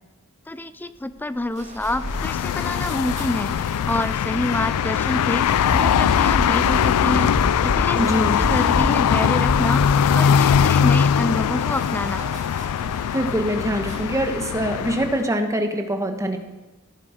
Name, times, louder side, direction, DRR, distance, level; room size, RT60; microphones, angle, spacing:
voice 1, 0.5-7.3 7.6-12.2, left 1 dB, 10° left, 13 dB, 0.4 m, -28 dB
sound 1, 0.9-14.4, right 2 dB, 30° right, 2.1 m, -41 dB
sound 2, 2.0-15.3, left 8 dB, 85° left, 0.3 m, -21 dB
sound 3, 5.5-10.9, equal, 35° left, 1.8 m, -28 dB
voice 2, 7.9-8.4 13.1-16.4, equal, 15° right, 5 dB, 1.3 m, -24 dB
16.0 x 10.0 x 5.1 m, 1.1 s
head